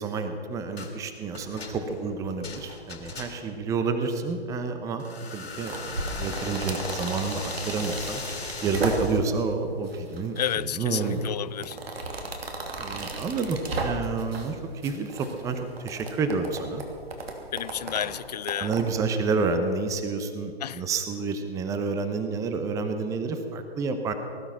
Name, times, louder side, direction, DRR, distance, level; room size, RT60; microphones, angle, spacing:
voice 1, 0.0-8.2 8.6-11.2 12.8-16.8 18.6-24.1, right 4 dB, 10° right, 0.8 m, -29 dB
sound 1, 0.8-1.0 1.3-3.6 5.0-9.2, left 4 dB, 75° left, 3.7 m, -38 dB
sound 2, 5.4-9.4 9.8-10.6 10.9-14.5 14.8-18.8, right 2 dB, 70° right, 2.9 m, -35 dB
sound 3, 6.6-8.6 9.3-9.4 12.8-13.7, right 3 dB, 85° right, 1.7 m, -44 dB
voice 2, 10.4-11.8 17.5-18.8 20.6-20.8, left 10 dB, 40° left, 0.4 m, -31 dB
20.0 x 12.0 x 6.0 m
figure-of-eight pair, 130°, 32 cm